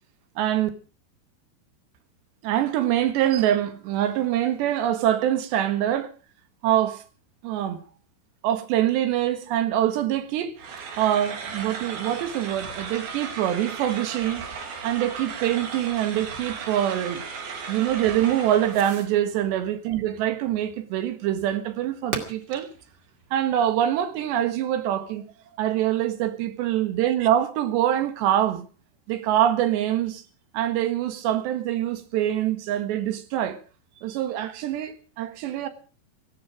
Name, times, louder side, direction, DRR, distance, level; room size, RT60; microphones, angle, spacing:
voice 1, 0.4-0.7 2.4-6.1 6.6-7.0 7.4-7.8 8.4-10.6 11.0-14.5 14.8-17.2 17.7-22.7 23.3-25.2 25.6-28.7 29.1-30.2 30.5-33.6 34.0-35.7, right 11 dB, 85° right, 3.8 m, -24 dB
Fireworks, 10.0-24.6, right 3 dB, 35° right, 2.1 m, -46 dB
sound 1, 10.6-19.0, right 5 dB, 65° right, 4.3 m, -36 dB
17.5 x 15.0 x 4.9 m
omnidirectional pair, 4.8 m